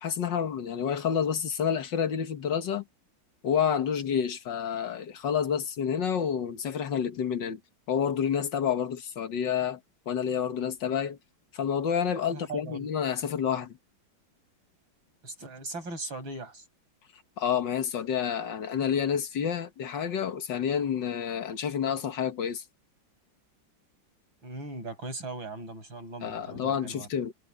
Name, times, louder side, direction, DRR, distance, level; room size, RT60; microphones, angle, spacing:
voice 1, 0.0-2.8 3.4-7.6 7.9-9.8 10.1-11.2 11.5-13.8 17.4-22.6 26.2-27.3, left 8 dB, 70° left, 2.0 m, -29 dB
voice 2, 12.3-12.9 15.2-16.6 24.4-27.1, right 2 dB, 90° right, 8.4 m, -39 dB
omnidirectional pair, 2.1 m